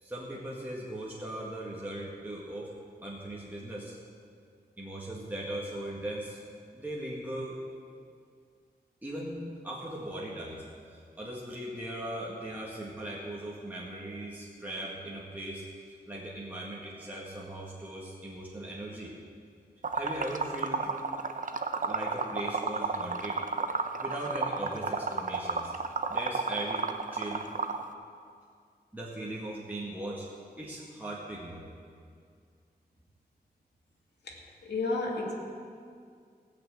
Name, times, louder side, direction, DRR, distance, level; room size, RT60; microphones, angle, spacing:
voice 1, 0.0-2.7 3.0-4.0 4.8-6.4 6.7-7.6 9.0-15.6 16.1-19.1 19.9-20.9 21.9-23.4 24.0-25.7 26.1-26.9 27.1-27.5 28.9-30.3 30.6-31.7, right 1 dB, 10° right, -5 dB, 1.8 m, -39 dB
Liquid, 19.8-27.8, right 4 dB, 50° right, 0.8 m, -32 dB
voice 2, 34.6-35.3, left 3 dB, 90° left, -1 dB, 2.2 m, -31 dB
17.5 x 6.1 x 8.3 m, 2.2 s
wide cardioid pair, 105°, 17 cm